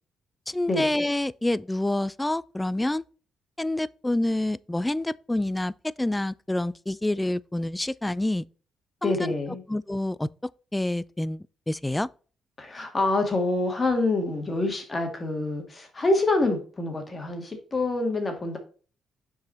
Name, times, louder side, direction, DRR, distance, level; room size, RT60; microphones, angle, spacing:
voice 1, 0.5-3.0 3.6-8.4 9.0-9.3 9.7-12.1, left 1 dB, 10° left, 0.3 m, -27 dB
voice 2, 9.0-9.6 12.6-18.6, left 2 dB, 30° left, 2.2 m, -26 dB
6.1 x 4.7 x 4.3 m
cardioid pair, 90°, 0 cm